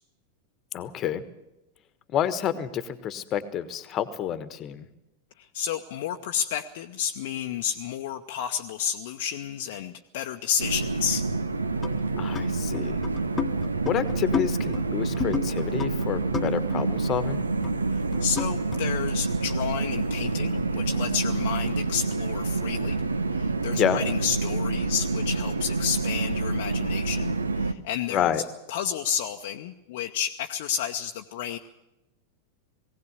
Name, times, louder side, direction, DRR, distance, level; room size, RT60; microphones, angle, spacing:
voice 1, 0.7-1.2 2.1-4.9 12.2-13.0 13.8-17.4 23.7-24.0 28.1-28.4, left 9 dB, 30° left, 13 dB, 1.3 m, -29 dB
voice 2, 5.4-11.3 17.9-23.0 23.3-28.3 28.7-31.6, left 9 dB, 50° left, 4 dB, 0.8 m, -31 dB
sound 1, 10.6-27.7, right 3 dB, 75° right, 0.9 m, -27 dB
sound 2, 11.8-12.5 12.7-16.8 17.0-17.3 17.6-17.8 18.1-18.8, left 7 dB, 15° left, 1.3 m, -32 dB
19.0 x 17.0 x 8.1 m, 0.94 s
figure-of-eight pair, 90°, 0 cm